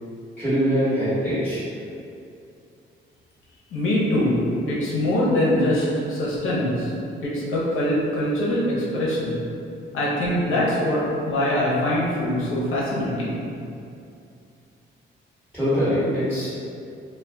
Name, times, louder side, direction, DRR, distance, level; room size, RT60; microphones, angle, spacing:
voice 1, 0.4-1.6 15.5-16.6, equal, ahead, -15 dB, 1.4 m, -23 dB
voice 2, 3.7-4.4 4.7-6.9 7.2-9.4 9.9-13.4, left 1 dB, 75° left, -6 dB, 0.9 m, -23 dB
2.3 x 2.3 x 3.4 m, 2.5 s
cardioid pair, 110°, 21 cm